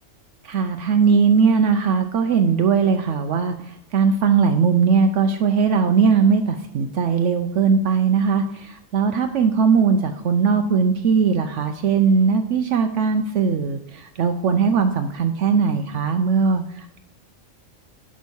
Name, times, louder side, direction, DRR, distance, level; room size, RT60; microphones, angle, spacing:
voice 1, 0.4-17.0, right 5 dB, 70° right, 7 dB, 0.9 m, -19 dB
10.5 x 6.3 x 5.4 m, 0.78 s
omnidirectional pair, 1.4 m